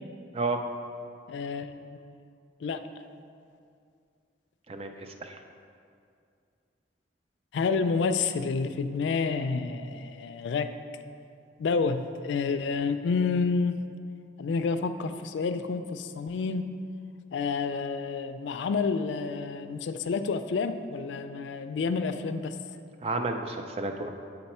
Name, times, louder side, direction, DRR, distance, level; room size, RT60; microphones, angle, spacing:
voice 1, 1.3-2.0 2.6-2.8 7.5-10.7 11.6-13.8 14.4-16.6 17.3-22.6, left 4 dB, 80° left, 10 dB, 0.3 m, -29 dB
voice 2, 4.7-5.4 23.0-24.1, right 3 dB, 35° right, 5 dB, 0.4 m, -31 dB
7.9 x 3.9 x 4.2 m, 2.4 s
head